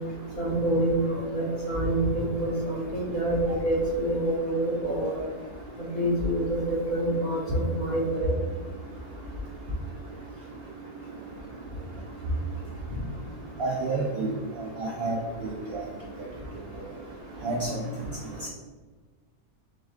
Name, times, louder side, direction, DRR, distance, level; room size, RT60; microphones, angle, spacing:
voice 1, 0.4-3.4 3.6-5.1 5.8-8.4, right 1 dB, 35° left, -4 dB, 1.0 m, -26 dB
voice 2, 13.6-14.3 14.8-15.2 15.4-15.8 17.4-17.7, right 3 dB, 65° right, -2 dB, 0.6 m, -29 dB
7.4 x 2.5 x 2.4 m, 1.4 s
omnidirectional pair, 1.6 m